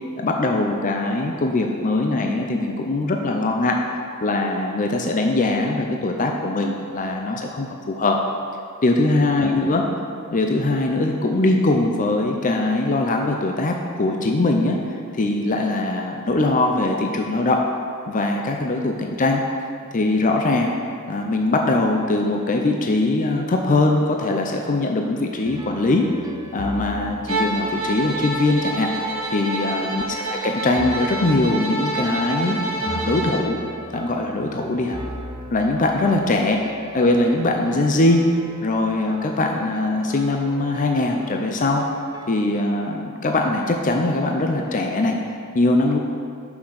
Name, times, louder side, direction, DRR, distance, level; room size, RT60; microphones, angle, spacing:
voice 1, 0.2-3.8 4.2-8.2 8.8-9.8 10.3-14.8 15.1-17.6 18.1-19.4 19.9-20.7 21.1-26.1 26.5-28.9 29.3-30.0 30.3-33.6 33.9-35.0 35.5-36.6 36.9-38.2 38.6-41.8 42.3-45.2 45.5-46.0, left 2 dB, 35° left, 2 dB, 0.5 m, -21 dB
sound 1, 25.4-42.4, right 1 dB, 15° right, 0.5 m, -40 dB
Bowed string instrument, 27.3-33.5, right 2 dB, 70° right, 1.2 m, -27 dB
6.0 x 5.8 x 6.4 m, 2.3 s
head